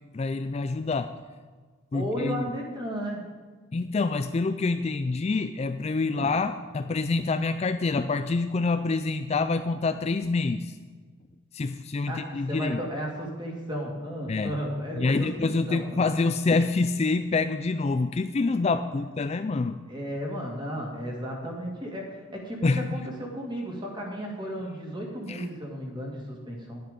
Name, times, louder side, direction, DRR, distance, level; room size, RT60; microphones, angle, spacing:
voice 1, 0.1-1.1 1.9-2.4 3.7-10.8 11.5-12.8 14.3-14.5 15.0-19.8 22.6-22.8 25.3-25.4, left 3 dB, 30° left, 9 dB, 0.3 m, -26 dB
voice 2, 1.9-3.2 6.0-6.3 12.1-16.1 19.9-26.8, equal, 20° right, -1 dB, 2.3 m, -34 dB
11.0 x 10.5 x 5.2 m, 1.5 s
head